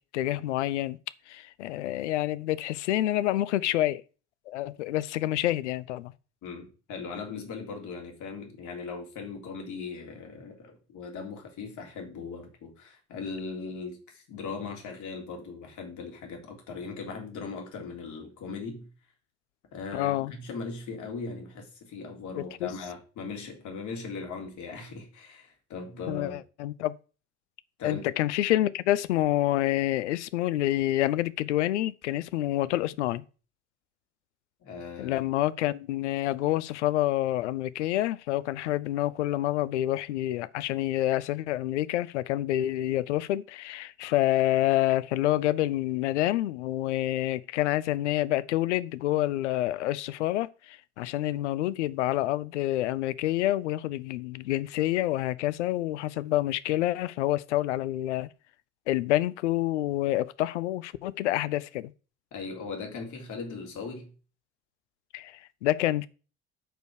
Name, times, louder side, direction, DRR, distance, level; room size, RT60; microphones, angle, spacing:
voice 1, 0.1-1.0 1.3-4.0 4.5-6.1 19.9-20.3 22.6-22.7 26.1-27.0 27.8-33.2 35.0-58.3 58.9-61.9 65.1-66.1, left 14 dB, 75° left, 0.7 m, -28 dB
voice 2, 6.4-18.9 19.7-26.4 27.8-28.1 34.6-35.2 62.3-64.1, left 4 dB, 55° left, 3.6 m, -39 dB
9.0 x 5.3 x 6.4 m
figure-of-eight pair, 55°, 36 cm